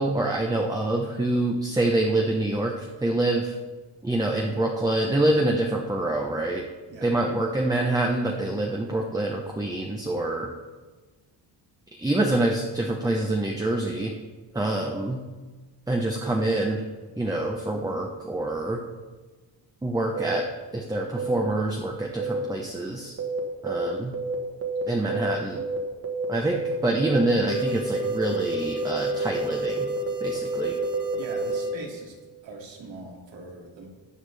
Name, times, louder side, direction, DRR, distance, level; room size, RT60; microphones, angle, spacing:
voice 1, 0.0-3.5 4.0-6.6 7.0-10.5 12.0-14.1 14.5-15.2 15.9-16.8 17.2-18.8 19.8-20.4 20.7-23.1 23.6-24.1 24.9-25.6 26.3-29.9 30.2-30.7, right 2 dB, 10° right, 0 dB, 0.7 m, -26 dB
sound 1, 20.2-20.4 21.2-21.4 22.2-22.4 23.2-23.4 23.7-23.9 24.1-24.3 24.6-24.8 25.1-25.3 25.6-25.8 26.0-26.3 26.5-26.7 27.0-27.2 27.5-31.7, right 3 dB, 30° right, 1.4 m, -29 dB
voice 2, 31.1-32.2 32.4-33.9, right 3 dB, 80° right, -1 dB, 2.6 m, -41 dB
18.0 x 7.2 x 3.4 m, 1.3 s
wide cardioid pair, 170°, 45 cm